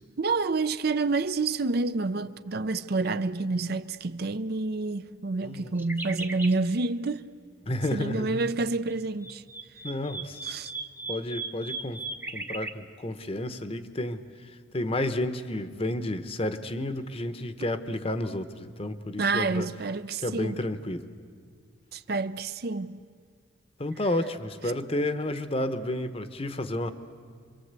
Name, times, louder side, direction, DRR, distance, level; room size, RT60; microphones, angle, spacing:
voice 1, 0.2-7.3 7.9-9.4 10.4-10.7 19.2-20.6 21.9-23.0, right 3 dB, 55° right, 0.6 m, -28 dB
voice 2, 5.4-5.9 7.7-8.5 9.8-10.4 11.1-12.0 12.3-14.2 14.7-19.7 20.2-21.1 23.8-26.9, left 1 dB, 30° left, 1.0 m, -31 dB
sound 1, 5.8-6.6 9.0-12.7, right 3 dB, 10° right, 0.7 m, -37 dB
26.5 x 23.5 x 8.2 m
head